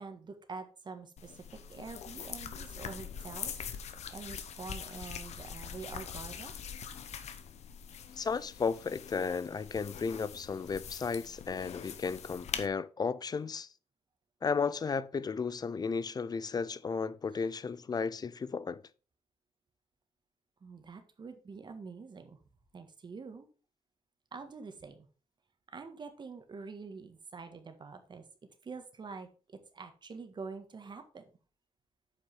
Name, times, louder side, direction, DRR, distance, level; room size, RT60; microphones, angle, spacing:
voice 1, 0.0-3.5 4.1-6.5 20.6-22.4 22.7-23.5 24.3-25.1 25.7-28.2 28.6-31.2, right 4 dB, 40° right, 1.7 m, -46 dB
sound 1, 1.2-12.7, left 7 dB, 70° left, 1.0 m, -43 dB
voice 2, 8.2-13.7 14.4-18.8, left 5 dB, 35° left, 0.6 m, -34 dB
8.2 x 5.3 x 4.9 m
cardioid pair, 105°, 12 cm